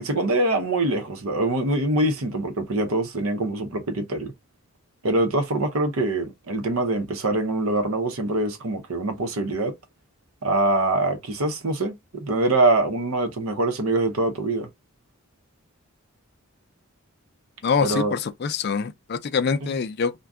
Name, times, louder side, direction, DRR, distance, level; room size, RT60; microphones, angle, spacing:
voice 1, 0.0-4.3 5.0-9.7 10.4-14.7 17.8-18.1, right 2 dB, 80° right, 0.8 m, -24 dB
voice 2, 17.6-20.1, left 6 dB, 50° left, 0.4 m, -25 dB
2.5 x 2.2 x 3.5 m
head